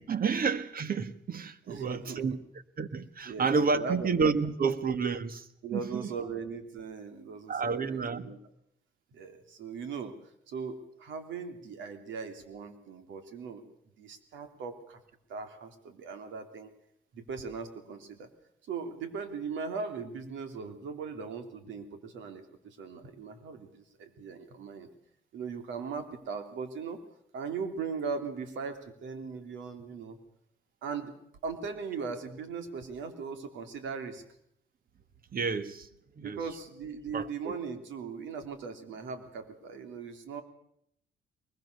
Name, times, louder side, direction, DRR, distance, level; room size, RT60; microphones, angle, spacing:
voice 1, 0.0-2.4 2.8-6.1 7.5-8.3 35.3-35.9 36.2-36.4 37.1-37.6, right 5 dB, 50° right, 13 dB, 1.8 m, -30 dB
voice 2, 1.7-2.4 3.2-4.1 5.6-8.4 9.1-10.1 10.5-13.6 14.0-15.0 15.3-16.7 17.1-18.3 18.6-24.9 25.3-27.0 27.3-30.2 30.8-31.2 31.4-34.2 36.2-40.4, right 5 dB, 85° right, 8 dB, 3.2 m, -39 dB
23.0 x 21.0 x 6.8 m, 0.72 s
cardioid pair, 80°, 19 cm